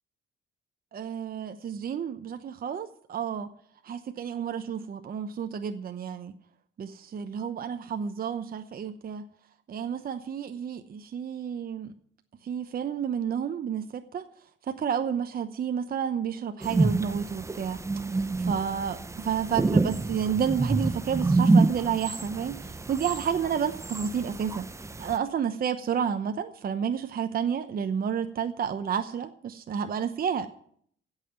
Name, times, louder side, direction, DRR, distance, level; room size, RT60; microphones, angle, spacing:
voice 1, 0.9-3.5 3.8-6.3 6.8-9.3 9.7-11.9 12.4-14.2 14.7-17.8 18.1-24.7 25.0-30.5, right 7 dB, 50° right, 8 dB, 0.9 m, -30 dB
sound 1, 16.6-25.2, right 3 dB, 15° right, 0.6 m, -27 dB
15.5 x 5.7 x 9.3 m, 0.64 s
cardioid pair, 90°, 20 cm